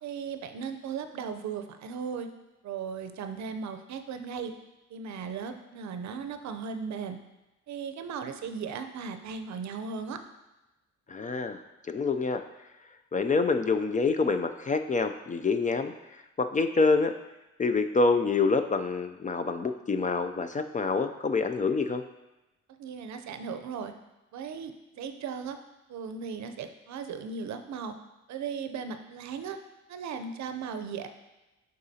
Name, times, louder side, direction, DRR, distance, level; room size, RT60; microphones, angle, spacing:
voice 1, 0.0-2.3 2.6-4.5 4.9-7.2 7.7-10.2 22.8-23.9 24.3-25.6 25.9-27.9 28.3-29.6 29.9-31.1, right 6 dB, 65° right, 8 dB, 0.6 m, -37 dB
voice 2, 11.1-12.4 13.1-17.1 17.6-22.0, left 4 dB, 25° left, 8 dB, 0.4 m, -27 dB
10.5 x 3.8 x 2.8 m, 1.0 s
cardioid pair, 90°, 30 cm